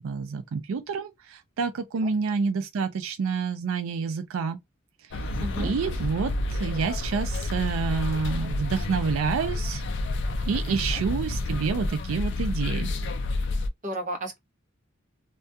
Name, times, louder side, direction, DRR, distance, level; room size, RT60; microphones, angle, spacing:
voice 1, 0.0-4.6 5.6-9.8 10.5-12.9, right 5 dB, 85° right, 0.4 m, -28 dB
sound 1, 5.1-13.7, left 2 dB, 60° left, 0.4 m, -29 dB
voice 2, 5.4-5.7 10.7-11.0 13.8-14.4, right 1 dB, 40° right, 0.7 m, -34 dB
2.3 x 2.2 x 2.6 m
head